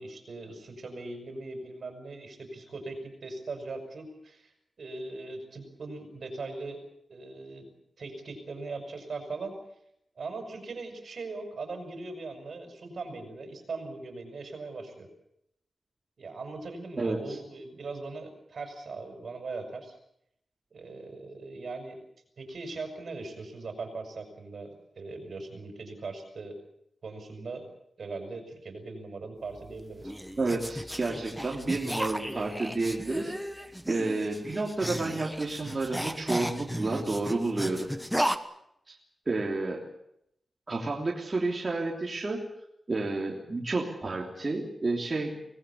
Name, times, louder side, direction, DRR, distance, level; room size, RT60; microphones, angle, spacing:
voice 1, 0.0-4.5 4.8-6.8 7.1-7.7 8.0-9.5 10.2-15.1 16.2-20.0 20.7-22.0 22.4-26.6 27.0-27.7 28.0-30.1, right 3 dB, 60° right, 6 dB, 5.8 m, -40 dB
voice 2, 17.0-17.4 30.4-33.3 33.9-37.9 38.9-39.0 39.3-39.8 40.7-42.4 42.9-45.4, right 3 dB, 30° right, -2 dB, 3.3 m, -30 dB
sound 1, 29.6-38.4, equal, ahead, 1.2 m, -35 dB
24.5 x 19.0 x 8.5 m, 0.75 s
wide cardioid pair, 165°, 0 cm